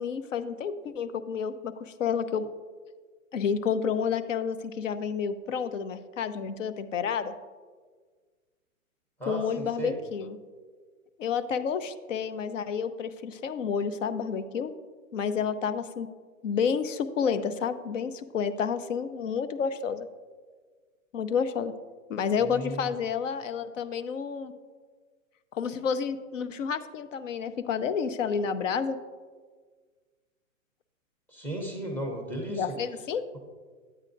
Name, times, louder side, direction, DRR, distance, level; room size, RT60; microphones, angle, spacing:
voice 1, 0.0-2.5 3.3-7.3 9.3-10.4 11.2-14.7 15.1-16.1 16.4-20.1 21.1-21.7 22.1-24.5 25.5-29.0 32.5-33.2, left 6 dB, 65° left, 12 dB, 0.7 m, -30 dB
voice 2, 9.2-10.0 22.4-22.9 31.3-32.8, right 1 dB, 5° left, 1 dB, 0.6 m, -35 dB
10.5 x 8.8 x 2.6 m, 1.5 s
hypercardioid pair, 140°, 41 cm